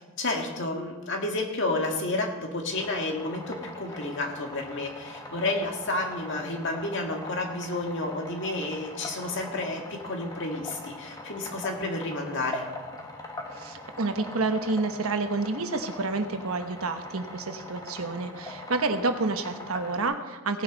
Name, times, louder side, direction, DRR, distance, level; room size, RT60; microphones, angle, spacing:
voice 1, 0.2-12.7, left 2 dB, 55° left, 2 dB, 1.9 m, -31 dB
sound 1, 2.7-20.0, left 2 dB, 15° left, 1.2 m, -42 dB
voice 2, 13.6-20.6, right 3 dB, 80° right, 7 dB, 1.1 m, -29 dB
17.5 x 9.7 x 4.1 m, 1.2 s
head